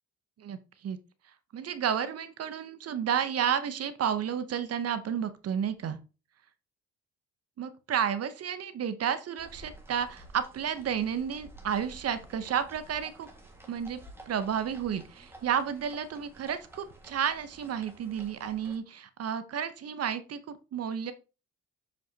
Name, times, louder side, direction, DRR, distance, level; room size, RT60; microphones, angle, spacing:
voice 1, 1.5-6.0 7.6-13.3 13.7-14.0 14.3-21.1, right 8 dB, 55° right, 12 dB, 0.8 m, -31 dB
sound 1, 9.4-18.8, right 1 dB, 10° right, 1.7 m, -52 dB
7.2 x 5.7 x 2.8 m, 0.32 s
cardioid pair, 90°, 30 cm